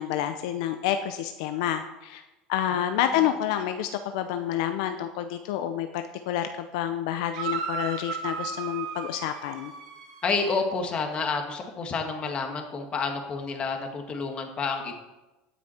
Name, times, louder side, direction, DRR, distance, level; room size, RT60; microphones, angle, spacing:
voice 1, 0.0-2.2 2.5-9.7, left 10 dB, 75° left, 8 dB, 0.6 m, -29 dB
sound 1, 7.3-10.6, right 6 dB, 90° right, 2.8 m, -35 dB
voice 2, 10.2-14.9, left 4 dB, 30° left, 4 dB, 1.7 m, -29 dB
17.0 x 6.1 x 4.4 m, 1.0 s
supercardioid pair, 130°, 3 cm